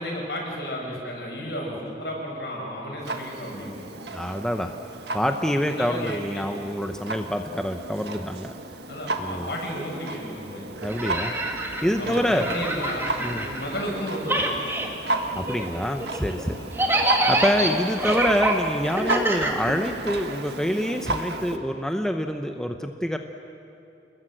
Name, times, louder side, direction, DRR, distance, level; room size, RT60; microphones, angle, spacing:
voice 1, 0.0-3.9 5.7-6.5 8.9-10.7 12.0-13.0 13.4-14.6 16.5-16.8, equal, 70° left, -2 dB, 7.4 m, -33 dB
Clock, 3.0-21.6, right 2 dB, 65° right, 1.6 m, -34 dB
voice 2, 4.1-4.7 5.1-8.5 9.2-9.5 10.8-11.3 11.8-12.7 13.2-13.5 15.3-16.6 17.3-23.2, equal, 5° left, 5 dB, 0.8 m, -26 dB
sound 1, 10.8-13.9 14.2-20.2, right 1 dB, 15° right, 2.1 m, -27 dB
29.0 x 21.0 x 7.9 m, 2.7 s
head